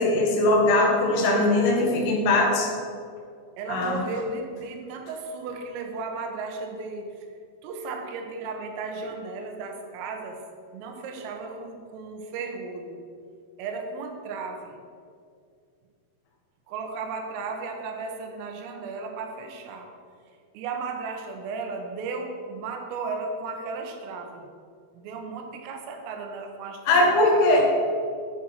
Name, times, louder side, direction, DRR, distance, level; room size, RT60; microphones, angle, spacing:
voice 1, 0.0-2.7 3.7-4.0 26.9-27.6, left 2 dB, 60° left, -2 dB, 2.4 m, -20 dB
voice 2, 1.1-2.1 3.6-7.3 7.6-10.4 10.7-13.0 13.6-14.8 16.7-19.9 20.6-24.5 24.9-27.7, right 4 dB, 85° right, 4 dB, 3.9 m, -35 dB
9.6 x 9.2 x 5.7 m, 2.3 s
omnidirectional pair, 5.8 m